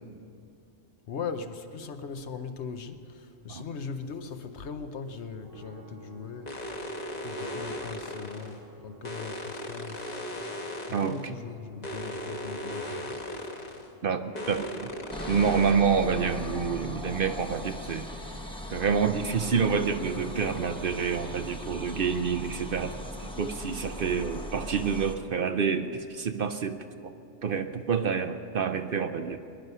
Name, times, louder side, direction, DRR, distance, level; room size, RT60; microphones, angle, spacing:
voice 1, 1.1-6.6 7.2-10.1 10.8-13.3, left 5 dB, 65° left, 8 dB, 1.1 m, -39 dB
sound 1, 5.4-24.6, equal, 20° right, 1.1 m, -51 dB
sound 2, 6.5-8.6 9.0-11.3 11.8-13.9 14.3-15.7, left 1 dB, 35° left, 1.3 m, -37 dB
voice 2, 10.9-11.3 14.0-14.9 15.3-18.1 18.7-27.1 27.4-29.4, right 6 dB, 55° right, 9 dB, 0.7 m, -28 dB
sound 3, 15.1-25.2, equal, 5° left, 0.8 m, -39 dB
23.0 x 11.0 x 5.5 m, 2.5 s
omnidirectional pair, 1.3 m